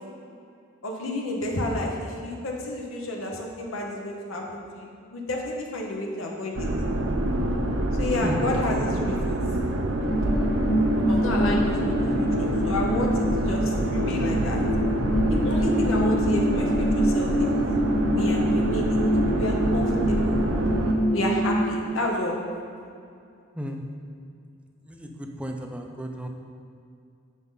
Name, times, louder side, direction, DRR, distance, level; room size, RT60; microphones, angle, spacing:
voice 1, 0.8-6.7 8.0-9.4 11.1-12.0 12.4-14.6 15.4-17.6 18.1-19.0 19.3-20.4 21.1-22.4, left 1 dB, 85° left, -1 dB, 1.0 m, -30 dB
sound 1, 6.5-20.9, right 1 dB, 80° right, 0.7 m, -26 dB
sound 2, 10.1-22.0, equal, 45° left, 0.8 m, -25 dB
voice 2, 23.6-23.9 24.9-26.3, equal, 5° right, 3 dB, 0.5 m, -33 dB
9.5 x 5.6 x 3.8 m, 2.4 s
head